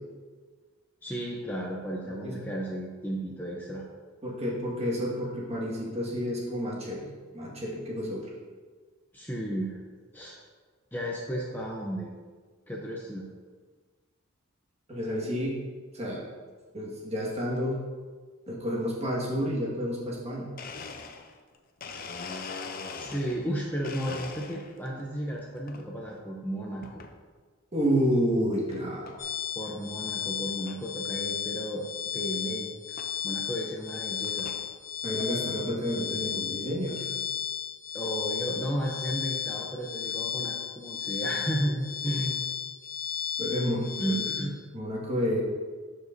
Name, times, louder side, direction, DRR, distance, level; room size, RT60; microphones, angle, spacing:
voice 1, 1.0-3.8 9.1-9.8 10.1-10.4 10.9-12.1 12.7-13.3 22.2-22.5 22.9-27.0 29.5-31.8 32.1-34.5 37.9-42.4 44.0-44.6, right 1 dB, 10° left, -3 dB, 0.7 m, -33 dB
voice 2, 4.2-7.0 7.3-8.3 14.9-15.6 15.9-16.2 16.7-17.8 18.5-20.5 27.7-29.2 35.0-37.1 43.4-44.2 44.7-45.4, equal, 30° right, -5 dB, 1.7 m, -30 dB
Domestic sounds home sounds, 20.6-23.5 23.8-24.9 25.3-25.8 26.8-27.2 27.7-27.8 28.7-28.8 29.1-29.4 29.8-29.9 30.1-30.2 30.7-30.8 32.1-32.2 33.0-33.1 33.8-34.7, left 4 dB, 45° left, 0.5 m, -41 dB
sound 1, 29.2-44.4, left 9 dB, 60° left, 1.5 m, -34 dB
12.0 x 5.0 x 2.7 m, 1.5 s
head